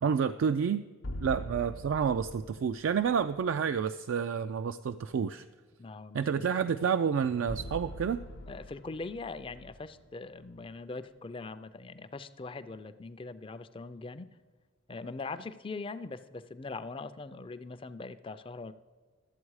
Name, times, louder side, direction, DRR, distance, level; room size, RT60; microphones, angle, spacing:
voice 1, 0.0-0.8 1.2-5.5 6.1-8.2, right 7 dB, 70° right, 10 dB, 0.3 m, -29 dB
sound 1, 1.0-3.2 7.5-10.7, equal, 70° left, 0.7 m, -43 dB
voice 2, 5.8-6.5 8.5-14.3 14.9-18.7, left 3 dB, 25° left, 13 dB, 0.4 m, -41 dB
12.5 x 7.9 x 4.7 m, 1.5 s
head